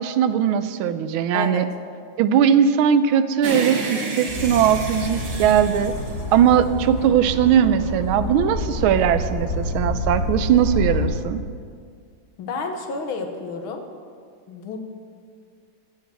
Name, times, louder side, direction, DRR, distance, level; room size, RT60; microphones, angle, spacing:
voice 1, 0.0-1.6 2.2-5.9 6.3-11.4, right 9 dB, 80° right, 12 dB, 1.5 m, -19 dB
sound 1, 3.4-6.9, right 3 dB, 55° right, 2.0 m, -30 dB
sound 2, 4.3-11.1, left 1 dB, 60° left, 3.0 m, -28 dB
voice 2, 12.4-13.8 14.5-14.8, left 4 dB, 80° left, 4 dB, 2.0 m, -30 dB
15.0 x 6.2 x 7.6 m, 2.1 s
omnidirectional pair, 2.3 m